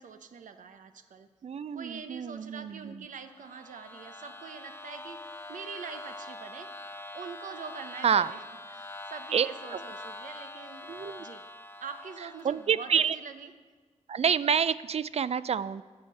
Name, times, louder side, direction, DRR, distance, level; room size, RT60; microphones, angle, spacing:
voice 1, 0.0-1.3 1.7-5.2 5.5-6.7 7.1-8.4 8.7-10.9 11.2-11.4 11.8-13.5, right 6 dB, 90° right, 9 dB, 0.8 m, -44 dB
voice 2, 1.4-3.1 8.0-8.3 9.3-9.5 9.7-9.8 10.9-11.3 12.4-13.2 14.1-15.8, right 7 dB, 55° right, 17 dB, 0.4 m, -28 dB
sound 1, 3.2-12.9, left 1 dB, 20° left, 0.9 m, -44 dB
11.5 x 7.2 x 7.8 m, 1.4 s
cardioid pair, 80°, 13 cm